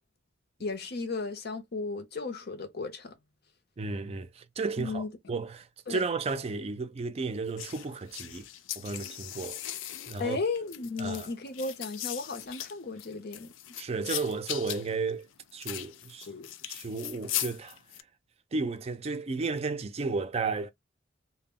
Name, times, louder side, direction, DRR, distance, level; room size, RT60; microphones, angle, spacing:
voice 1, 0.6-3.1 4.8-5.1 5.9-6.0 10.2-13.5 16.3-16.5, left 3 dB, 55° left, 0.6 m, -35 dB
voice 2, 3.8-8.5 8.8-9.6 10.1-10.4 11.0-11.3 13.8-15.3 15.5-16.3 16.7-17.8 18.5-20.7, right 4 dB, 35° right, 0.4 m, -33 dB
sound 1, 7.6-18.0, left 12 dB, 90° left, 0.3 m, -39 dB
2.1 x 2.0 x 3.5 m
head